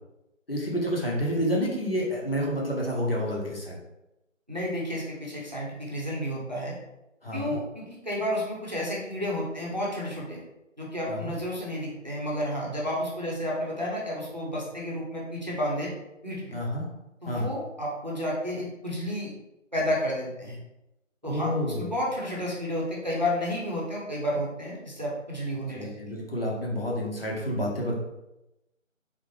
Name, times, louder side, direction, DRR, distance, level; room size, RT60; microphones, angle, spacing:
voice 1, 0.5-3.8 7.2-7.6 11.1-11.3 16.5-16.8 17.3-17.5 21.2-21.9 25.7-28.0, equal, 45° left, -3 dB, 1.0 m, -29 dB
voice 2, 4.5-6.7 7.3-10.4 10.8-15.9 16.2-16.6 17.2-19.3 19.7-20.6 21.2-25.9, equal, 35° right, -5 dB, 0.8 m, -31 dB
3.7 x 2.9 x 3.2 m, 0.92 s
figure-of-eight pair, 180°, 39 cm